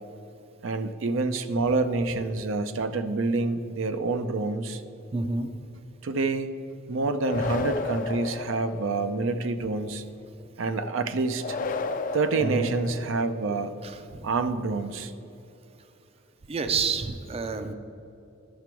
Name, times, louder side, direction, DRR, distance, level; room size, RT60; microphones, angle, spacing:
voice 1, 0.6-4.8 6.0-6.5 6.9-10.0 10.6-11.6 12.1-13.7 14.2-15.1, right 3 dB, 85° right, 9 dB, 0.5 m, -27 dB
voice 2, 5.1-5.5 7.3-7.7 12.4-12.7 13.8-14.3 16.5-17.7, right 4 dB, 30° right, 9 dB, 0.4 m, -29 dB
sound 1, 7.2-9.3 11.4-13.5, left 4 dB, 45° left, 0.4 m, -33 dB
11.0 x 6.0 x 4.5 m, 2.8 s
head